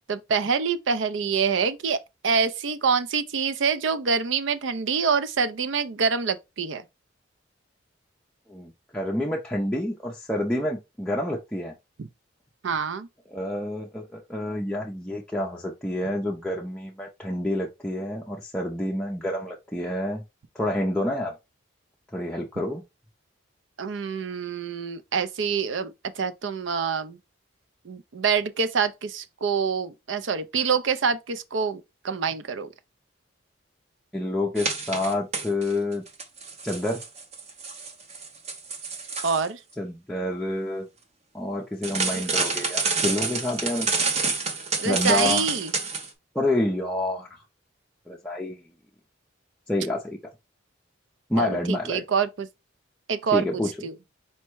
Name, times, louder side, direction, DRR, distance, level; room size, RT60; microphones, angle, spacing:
voice 1, 0.0-2.0 2.2-6.8 12.0-12.1 12.6-13.1 23.8-27.2 27.8-32.7 39.2-39.6 42.1-42.2 44.8-45.7 51.4-52.5 53.1-53.9, right 5 dB, 75° right, 0.5 m, -26 dB
voice 2, 8.5-11.7 13.3-20.2 20.5-21.3 22.1-22.8 34.1-36.0 36.6-37.0 39.8-40.9 41.3-43.9 44.8-45.5 46.3-47.3 48.1-48.6 49.7-50.2 51.3-52.0 53.3-53.7, left 1 dB, 5° left, 0.5 m, -28 dB
sound 1, 34.6-35.7 36.1-39.5 41.8-46.1, right 4 dB, 35° right, 0.7 m, -28 dB
4.4 x 2.1 x 4.5 m
head